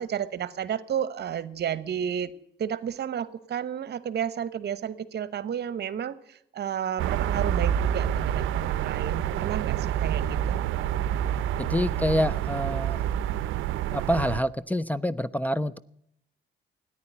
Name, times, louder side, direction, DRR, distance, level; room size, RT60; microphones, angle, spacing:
voice 1, 0.0-2.3 2.6-10.4, right 9 dB, 55° right, 1.0 m, -32 dB
sound 1, 7.0-14.4, right 10 dB, 85° right, 0.6 m, -27 dB
voice 2, 11.6-13.0 13.9-15.8, equal, 10° left, 0.5 m, -27 dB
14.0 x 9.8 x 10.0 m
cardioid pair, 90°, 20 cm